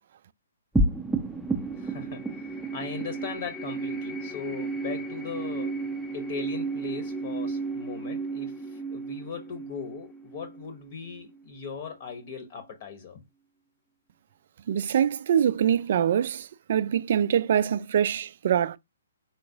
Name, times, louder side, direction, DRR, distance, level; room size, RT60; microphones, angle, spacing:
sound 1, 0.7-11.4, right 2 dB, ahead, 0.6 m, -32 dB
voice 1, 1.5-5.8 6.1-13.2, left 6 dB, 35° left, 0.9 m, -39 dB
voice 2, 14.7-18.8, right 9 dB, 45° right, 0.3 m, -24 dB
4.4 x 3.6 x 2.6 m
figure-of-eight pair, 125°, 0 cm